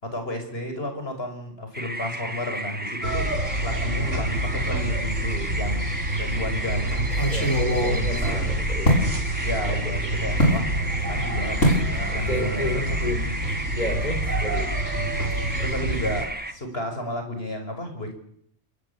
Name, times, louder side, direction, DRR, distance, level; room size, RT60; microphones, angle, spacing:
voice 1, 0.0-5.8 6.2-7.0 8.2-8.5 9.4-12.9 14.9-15.2 15.6-18.2, left 1 dB, 50° left, 5 dB, 6.3 m, -33 dB
sound 1, 1.7-16.5, right 1 dB, 10° right, 1.7 m, -33 dB
sound 2, 3.0-16.2, right 1 dB, 75° right, 5.1 m, -28 dB
sound 3, 5.2-5.8 6.1-6.2 7.0-9.1 10.4-10.6 11.6-11.9 12.2-12.5 12.8-13.0, equal, 85° left, 7.2 m, -23 dB
voice 2, 7.3-9.1 9.6-9.8 10.1-10.2 10.8-11.3 12.1-13.3 13.8-14.7, left 1 dB, 35° left, 3 dB, 5.4 m, -32 dB
27.5 x 23.0 x 8.7 m, 0.69 s
omnidirectional pair, 1.3 m